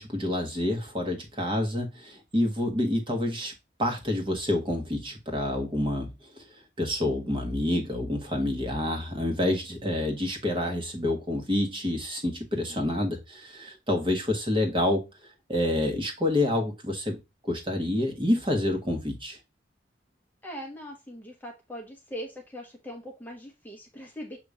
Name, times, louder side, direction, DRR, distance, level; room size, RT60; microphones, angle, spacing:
voice 1, 0.0-3.5 3.8-6.4 6.8-15.0 15.5-19.4, left 1 dB, 25° right, 2 dB, 1.3 m, -28 dB
voice 2, 20.4-24.4, equal, 10° left, 1 dB, 0.9 m, -41 dB
6.8 x 2.9 x 4.8 m, 0.24 s
head